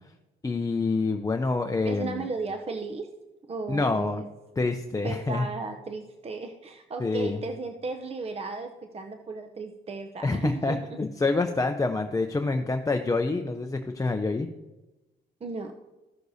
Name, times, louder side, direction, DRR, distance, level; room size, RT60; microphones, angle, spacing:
voice 1, 0.4-2.2 3.7-4.2 4.6-5.5 7.0-7.4 10.2-14.5, left 3 dB, 15° left, 4 dB, 0.5 m, -27 dB
voice 2, 1.8-3.2 3.5-4.3 5.0-11.0 15.4-15.8, right 3 dB, 30° right, 5 dB, 0.7 m, -35 dB
14.5 x 6.4 x 2.7 m, 1.1 s
cardioid pair, 90°, 20 cm